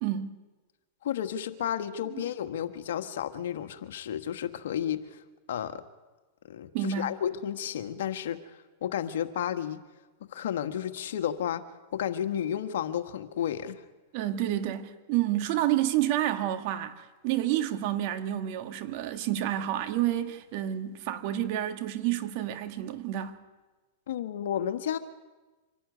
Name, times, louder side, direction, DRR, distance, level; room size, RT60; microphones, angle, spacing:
voice 1, 0.0-0.3 2.1-2.2 6.7-7.1 14.1-23.4, right 12 dB, 55° right, 1.7 m, -29 dB
voice 2, 1.0-5.2 5.5-5.8 6.5-8.4 8.8-9.8 10.2-11.7 11.9-13.8 24.1-25.0, left 9 dB, 75° left, 1.5 m, -32 dB
25.5 x 12.5 x 9.6 m
hypercardioid pair, 120°, 0 cm